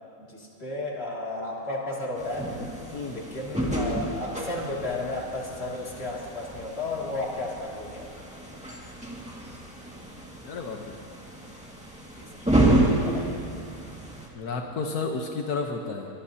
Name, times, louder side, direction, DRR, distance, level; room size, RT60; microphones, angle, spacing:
voice 1, 0.2-2.6 3.1-8.1 12.2-12.5 13.0-13.4, left 2 dB, 40° left, -3 dB, 2.8 m, -33 dB
sound 1, 2.2-14.3, right 1 dB, 5° right, 1.9 m, -30 dB
voice 2, 2.9-3.2 10.4-10.9 14.3-16.1, left 4 dB, 85° left, 2 dB, 1.6 m, -31 dB
23.5 x 20.5 x 2.9 m, 2.6 s
omnidirectional pair, 1.6 m